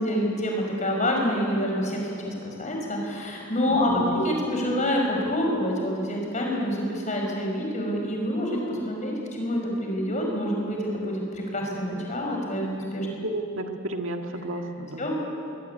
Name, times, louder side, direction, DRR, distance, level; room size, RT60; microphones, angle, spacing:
voice 1, 0.0-13.3 15.0-15.3, equal, 35° left, 0 dB, 5.5 m, -27 dB
voice 2, 3.7-4.2 13.1-15.3, right 1 dB, 70° right, 4 dB, 1.8 m, -33 dB
22.0 x 18.5 x 9.4 m, 2.6 s
head